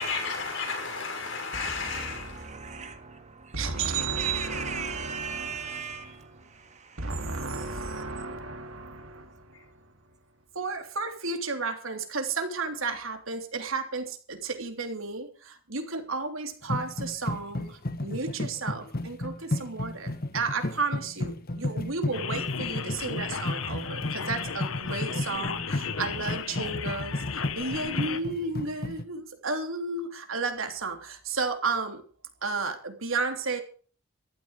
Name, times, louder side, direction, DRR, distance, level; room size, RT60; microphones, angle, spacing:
voice 1, 0.0-2.5 9.5-9.6, left 4 dB, 65° left, 5.9 m, -33 dB
voice 2, 1.5-8.2, right 4 dB, 35° right, 2.2 m, -39 dB
voice 3, 3.5-5.8 7.0-9.7 10.5-32.0 32.4-33.6, right 4 dB, 80° right, 3.3 m, -33 dB
sound 1, 16.6-29.0, left 1 dB, 45° left, 1.4 m, -33 dB
sound 2, 22.1-28.2, left 6 dB, 90° left, 1.3 m, -34 dB
14.5 x 13.0 x 5.1 m
head